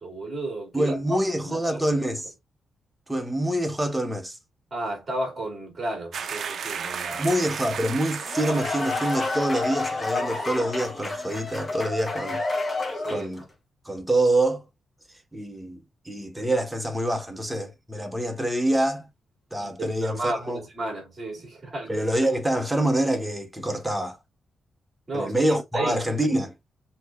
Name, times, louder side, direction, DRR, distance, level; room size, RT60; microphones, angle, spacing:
voice 1, 0.0-1.2 1.4-1.9 4.7-7.4 12.9-13.3 19.6-21.9 25.1-25.3 25.7-26.0, right 1 dB, 25° right, 2.4 m, -33 dB
voice 2, 0.7-2.2 3.1-4.4 7.2-12.4 13.1-13.4 13.9-14.7 15.3-19.1 19.5-20.6 21.9-24.2 25.1-26.5, right 1 dB, 5° right, 0.7 m, -26 dB
sound 1, 6.1-10.1 10.3-10.5, right 7 dB, 55° right, 0.4 m, -35 dB
sound 2, 8.1-13.4, left 2 dB, 20° left, 1.0 m, -29 dB
6.2 x 2.8 x 2.4 m
wide cardioid pair, 165°, 0 cm